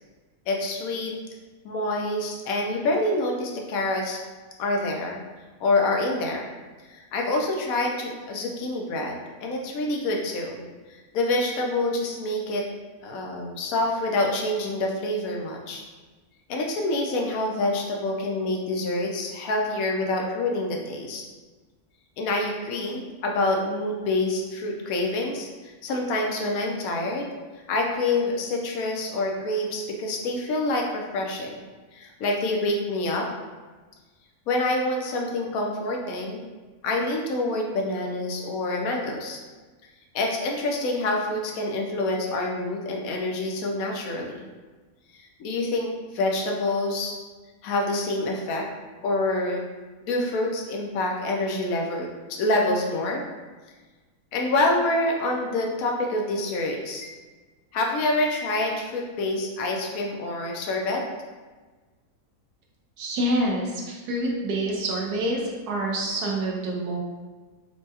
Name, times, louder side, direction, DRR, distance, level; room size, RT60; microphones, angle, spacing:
voice 1, 0.5-1.2 1.6-4.2 4.6-5.2 5.6-6.5 6.9-12.7 13.0-15.8 16.5-21.2 22.2-27.3 27.7-31.6 31.9-33.3 34.5-36.4 36.8-39.4 40.1-44.5 45.1-47.2 47.6-48.6 49.0-49.6 50.1-52.1 52.4-53.2 54.3-57.1 57.7-61.0, left 2 dB, 70° left, 1 dB, 1.0 m, -27 dB
voice 2, 63.0-67.0, right 1 dB, 80° right, -1 dB, 1.2 m, -27 dB
4.4 x 2.2 x 2.8 m, 1.3 s
omnidirectional pair, 1.6 m